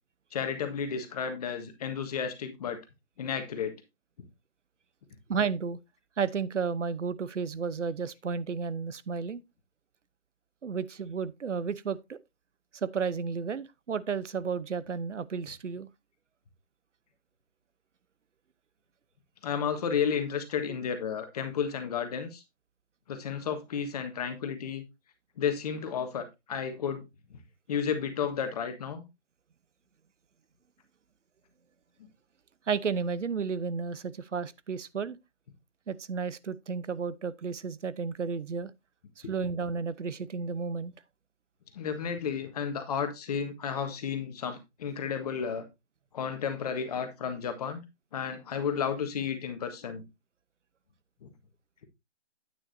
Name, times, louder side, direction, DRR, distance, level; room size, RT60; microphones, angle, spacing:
voice 1, 0.3-2.8 3.2-3.7 19.4-22.4 23.1-24.8 25.4-27.0 27.3-27.4 27.7-29.0 41.7-45.6 46.1-47.8 48.1-50.0 51.2-51.3, left 7 dB, 35° left, 1.6 m, -32 dB
voice 2, 5.3-5.8 6.2-9.4 10.6-12.2 12.8-15.9 32.7-35.2 35.9-38.7 39.2-40.9, right 5 dB, 80° right, 0.9 m, -32 dB
9.8 x 9.2 x 2.7 m
hypercardioid pair, 155°, 36 cm